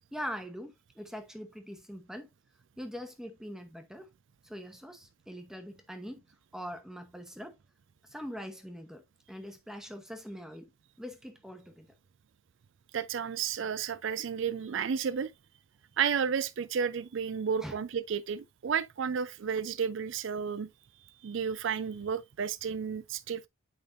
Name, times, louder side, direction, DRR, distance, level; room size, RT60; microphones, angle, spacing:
voice 1, 0.1-2.3 2.8-4.1 4.4-6.2 6.5-7.6 8.0-9.0 9.3-10.7 11.0-11.9 17.6-17.8, equal, ahead, 0.9 m, -42 dB
voice 2, 12.9-15.3 16.0-20.7 21.2-23.5, right 7 dB, 60° right, 0.4 m, -32 dB
8.9 x 5.1 x 2.5 m
head